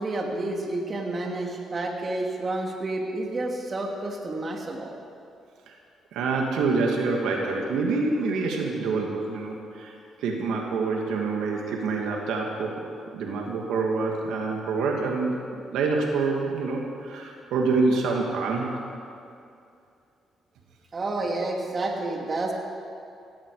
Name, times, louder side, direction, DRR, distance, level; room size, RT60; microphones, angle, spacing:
voice 1, 0.0-4.9 20.9-22.5, right 2 dB, 35° right, 1 dB, 2.4 m, -30 dB
voice 2, 6.1-10.0 10.2-12.8 13.1-15.3 15.7-18.7, right 4 dB, 85° right, 0 dB, 2.3 m, -26 dB
17.0 x 16.5 x 5.0 m, 2.5 s
cardioid pair, 90°, 0 cm